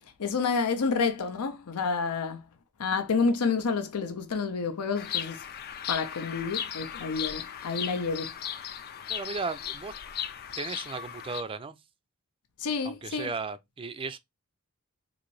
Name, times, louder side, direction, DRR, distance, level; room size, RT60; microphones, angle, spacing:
voice 1, 0.2-2.5 2.8-5.5 5.9-8.4 12.6-13.3, left 5 dB, 85° left, 0.6 m, -29 dB
Bird vocalization bird call bird song, 4.9-11.4, left 9 dB, 45° left, 0.4 m, -36 dB
voice 2, 9.1-9.9 10.5-11.8 12.8-14.2, right 4 dB, 25° right, 0.3 m, -35 dB
3.8 x 2.5 x 3.1 m
head